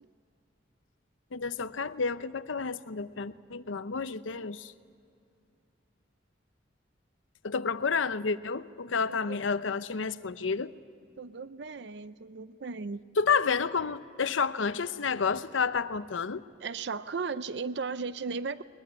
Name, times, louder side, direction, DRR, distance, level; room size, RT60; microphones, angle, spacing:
voice 1, 1.3-4.7 7.4-10.7 13.2-16.4, left 5 dB, 90° left, 0.8 m, -30 dB
voice 2, 11.2-13.0 16.6-18.6, right 4 dB, 60° right, 0.5 m, -36 dB
21.5 x 21.0 x 9.6 m
head